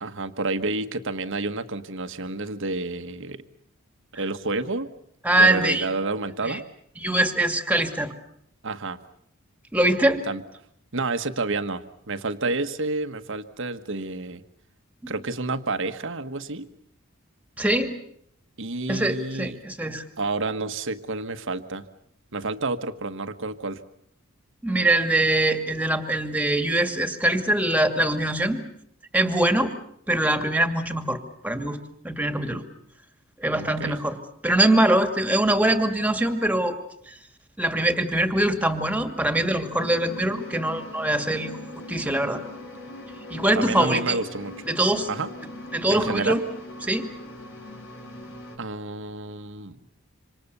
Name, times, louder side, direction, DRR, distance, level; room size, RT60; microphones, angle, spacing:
voice 1, 0.0-3.4 4.1-4.9 5.3-6.6 8.6-9.0 10.2-10.4 10.9-14.4 15.1-16.7 18.6-19.6 20.2-21.8 22.3-23.8 33.5-34.0 43.5-44.5 45.1-45.3 45.9-46.4 48.6-49.8, right 3 dB, 65° right, 9 dB, 1.5 m, -29 dB
voice 2, 5.2-5.9 6.4-6.6 7.0-8.1 9.7-10.2 15.0-15.1 17.6-17.9 18.9-20.1 24.6-28.6 29.1-29.7 30.1-31.8 32.0-32.6 33.4-34.2 34.4-36.8 37.1-37.2 37.6-41.6 41.9-42.4 43.3-44.2 44.7-45.1 45.7-46.4 46.8-47.1, right 1 dB, 5° right, 7 dB, 2.3 m, -23 dB
sound 1, 39.7-48.6, left 1 dB, 65° left, 5.0 m, -40 dB
26.5 x 26.0 x 6.9 m, 0.69 s
head